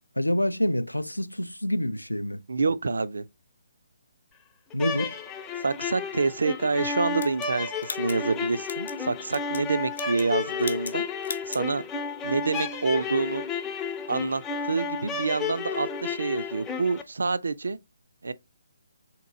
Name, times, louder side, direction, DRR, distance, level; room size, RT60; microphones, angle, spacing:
voice 1, 0.2-2.4 4.7-5.2, left 1 dB, 85° left, 0.3 m, -27 dB
voice 2, 2.5-3.2 5.6-11.0 11.5-11.9 12.2-13.4 14.1-17.8 18.2-18.3, right 4 dB, 65° right, 0.3 m, -27 dB
sound 1, 4.7-17.0, left 5 dB, 15° left, 0.4 m, -32 dB
sound 2, 7.2-9.0 9.3-9.7 9.9-10.3 10.6-11.0 11.2-11.7, left 4 dB, 60° left, 0.6 m, -38 dB
3.7 x 2.9 x 3.6 m
figure-of-eight pair, 140°, 0 cm